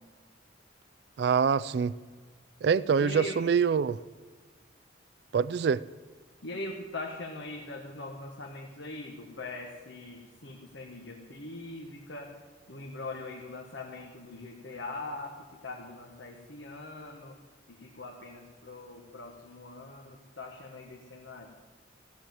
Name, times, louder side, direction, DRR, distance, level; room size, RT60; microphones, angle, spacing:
voice 1, 1.2-1.9 2.6-4.0 5.3-5.8, right 6 dB, 60° right, 0.3 m, -25 dB
voice 2, 3.0-3.4 6.4-12.3 12.7-17.4 17.7-21.5, left 2 dB, 75° left, 1.4 m, -41 dB
15.0 x 7.4 x 7.7 m
head